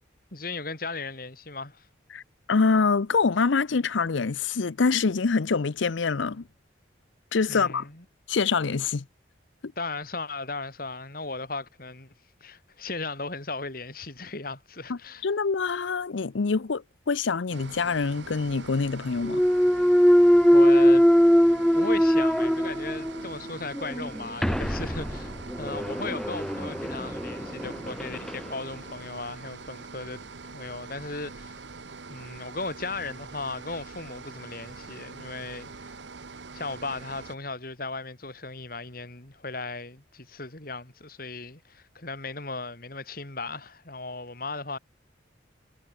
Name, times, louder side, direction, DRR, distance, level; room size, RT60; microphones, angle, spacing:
voice 1, 0.3-1.9 7.5-8.0 9.8-12.1 12.4-15.2 20.5-21.1 21.7-25.3 25.6-31.6 32.1-36.0 36.5-44.8, left 3 dB, 50° left, 3.3 m, -36 dB
voice 2, 2.5-6.5 7.3-7.9 8.3-9.1 9.6-9.7 14.9-19.4, left 4 dB, 80° left, 0.6 m, -25 dB
sound 1, 17.5-37.4, right 4 dB, 70° right, 1.1 m, -44 dB
Thump thud, 19.2-23.3 23.7-28.4, equal, 5° left, 0.5 m, -21 dB
head